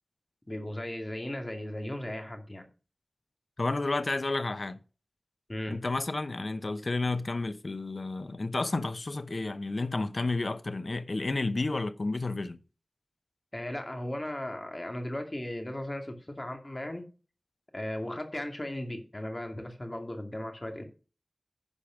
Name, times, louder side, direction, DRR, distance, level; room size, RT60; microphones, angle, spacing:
voice 1, 0.5-2.7 5.5-5.8 13.5-17.1 17.7-20.8, left 1 dB, 30° left, 2.3 m, -36 dB
voice 2, 3.6-4.8 5.7-12.6, left 2 dB, 60° left, 0.8 m, -31 dB
11.0 x 5.1 x 6.2 m
wide cardioid pair, 70°, 0 cm